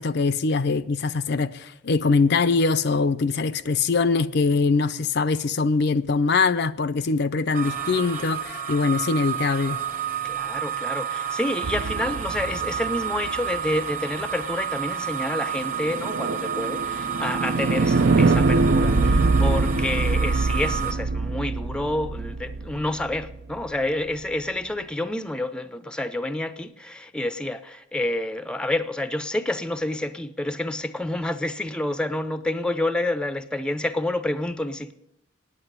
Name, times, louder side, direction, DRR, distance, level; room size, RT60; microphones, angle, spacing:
voice 1, 0.0-9.8, left 4 dB, 55° left, 0.5 m, -22 dB
sound 1, 7.5-20.9, right 8 dB, 40° right, 1.4 m, -31 dB
voice 2, 10.2-34.9, left 1 dB, 5° left, 0.5 m, -29 dB
sound 2, 11.6-13.8 15.6-23.7, right 3 dB, 60° right, 0.6 m, -24 dB
9.9 x 8.5 x 9.4 m
head